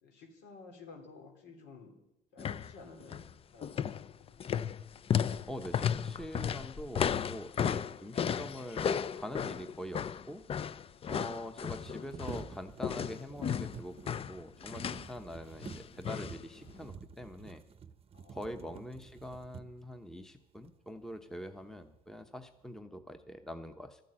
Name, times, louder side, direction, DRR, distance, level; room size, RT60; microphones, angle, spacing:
voice 1, 0.0-2.0 2.3-4.5 18.1-18.5, left 4 dB, 90° left, 3 dB, 3.2 m, -54 dB
sound 1, 2.4-2.7 3.0-3.3 3.6-12.5 12.8-15.1 15.6-16.4 16.7-16.8, left 8 dB, 35° left, 0.4 m, -34 dB
voice 2, 5.5-10.4 11.1-17.6 18.3-24.0, equal, 5° left, 8 dB, 0.8 m, -44 dB
sound 2, 10.1-10.2 10.4-10.5 11.6-20.0 20.6-20.8 21.2-21.8 22.2-22.7, right 6 dB, 35° right, 0.7 m, -50 dB
13.0 x 9.2 x 8.8 m, 0.87 s
cardioid pair, 110°, 17 cm